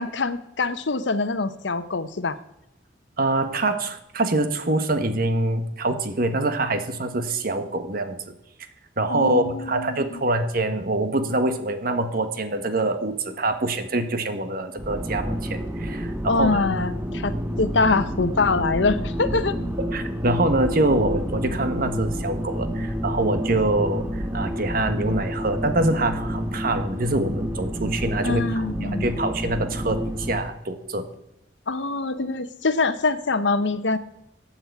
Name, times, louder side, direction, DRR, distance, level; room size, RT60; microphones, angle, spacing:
voice 1, 0.0-2.4 9.1-10.2 16.2-19.5 28.2-29.1 31.7-34.0, left 3 dB, 85° left, 12 dB, 0.9 m, -24 dB
voice 2, 3.2-8.3 9.0-16.6 19.9-31.0, right 2 dB, 55° right, 8 dB, 1.3 m, -25 dB
sound 1, 14.8-30.4, equal, 10° right, 1.0 m, -29 dB
15.0 x 8.8 x 4.7 m, 0.84 s
head